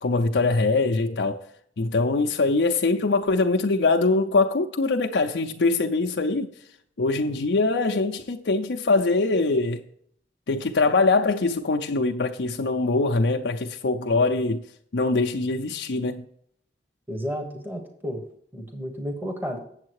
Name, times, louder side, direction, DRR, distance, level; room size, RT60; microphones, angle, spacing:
voice 1, 0.0-1.4 1.8-6.5 7.0-9.8 10.5-14.6 14.9-16.2, left 3 dB, 80° left, 0.6 m, -23 dB
voice 2, 17.1-18.2 18.5-19.6, equal, 10° right, 1.3 m, -32 dB
8.5 x 7.3 x 4.7 m
head